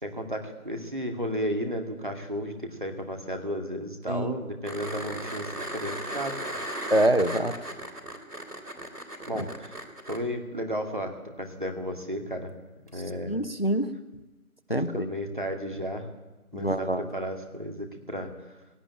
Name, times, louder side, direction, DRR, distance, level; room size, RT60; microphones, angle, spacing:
voice 1, 0.0-6.4 9.3-9.8 10.1-12.5 12.9-13.4 14.7-16.1 16.5-18.3, equal, 35° right, 3 dB, 2.2 m, -33 dB
sound 1, 4.6-10.2 12.9-13.0, right 1 dB, 90° right, 3.6 m, -36 dB
voice 2, 6.9-7.6 13.3-13.9 14.7-15.1 16.5-17.1, right 1 dB, 40° left, 11 dB, 0.9 m, -25 dB
18.5 x 17.0 x 8.8 m, 1.1 s
figure-of-eight pair, 175°, 45 cm